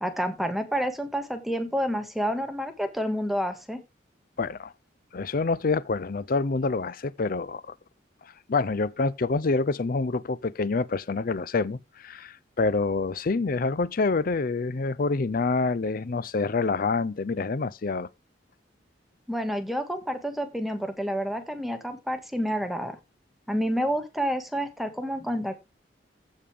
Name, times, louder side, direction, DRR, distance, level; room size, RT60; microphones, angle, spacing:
voice 1, 0.0-3.8 19.3-23.0 23.5-25.5, equal, ahead, 1.7 m, -29 dB
voice 2, 4.4-4.7 5.1-7.7 8.2-18.1, left 3 dB, 50° left, 0.5 m, -27 dB
15.5 x 5.4 x 3.5 m
head